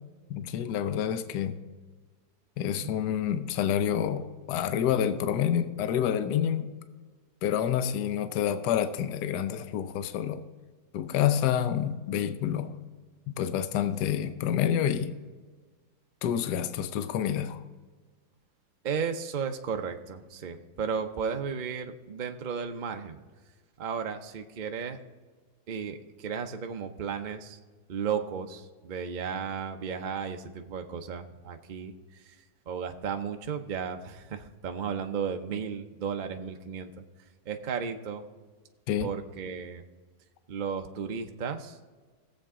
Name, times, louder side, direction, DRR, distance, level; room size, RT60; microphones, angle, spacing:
voice 1, 0.3-1.6 2.6-6.7 7.4-10.4 10.9-12.7 13.3-15.1 16.2-17.6 38.9-39.1, left 9 dB, 70° left, 10 dB, 1.2 m, -28 dB
voice 2, 18.8-23.2 23.8-25.0 25.7-27.6 27.9-32.4 32.7-37.0 37.5-38.2 39.0-39.8 40.5-41.8, right 6 dB, 80° right, 5 dB, 0.4 m, -34 dB
18.0 x 7.8 x 3.7 m, 1.4 s
omnidirectional pair, 2.0 m